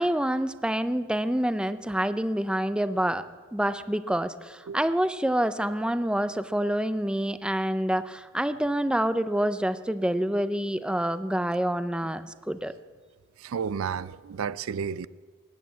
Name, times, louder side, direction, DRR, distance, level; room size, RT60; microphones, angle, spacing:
voice 1, 0.0-3.2 3.5-12.7, right 1 dB, 5° right, 0.5 m, -27 dB
voice 2, 13.4-15.1, right 6 dB, 85° right, 0.4 m, -32 dB
19.5 x 8.5 x 8.4 m
head